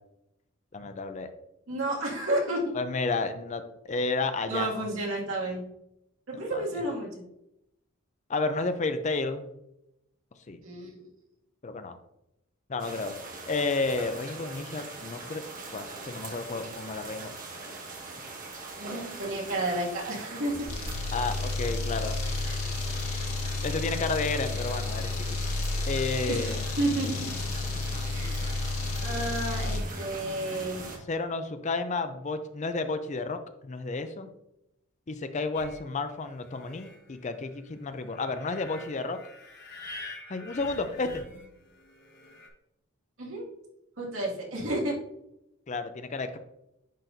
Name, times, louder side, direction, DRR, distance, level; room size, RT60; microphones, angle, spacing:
voice 1, 0.7-1.3 2.7-4.9 6.5-6.6 8.3-9.5 10.5-10.6 11.6-12.0 12.7-13.1 13.5-15.4 15.7-17.3 21.1-22.2 23.6-25.2 25.9-26.7 31.1-34.3 35.1-39.2 40.3-41.2 45.7-46.4, left 3 dB, 35° left, 9 dB, 0.4 m, -31 dB
voice 2, 1.7-2.6 4.5-5.6 6.3-7.1 10.6-11.1 18.8-20.7 22.5-22.7 23.0-23.4 26.3-27.3 28.1-28.6 29.0-30.8 43.2-43.5 44.0-45.0, right 1 dB, 70° right, -4 dB, 2.2 m, -31 dB
sound 1, 12.8-31.0, right 3 dB, 40° right, 1.3 m, -42 dB
sound 2, 20.7-29.9, left 3 dB, 85° left, 1.0 m, -31 dB
sound 3, 35.5-42.5, left 2 dB, 50° left, 1.5 m, -47 dB
10.0 x 4.0 x 2.6 m, 0.83 s
head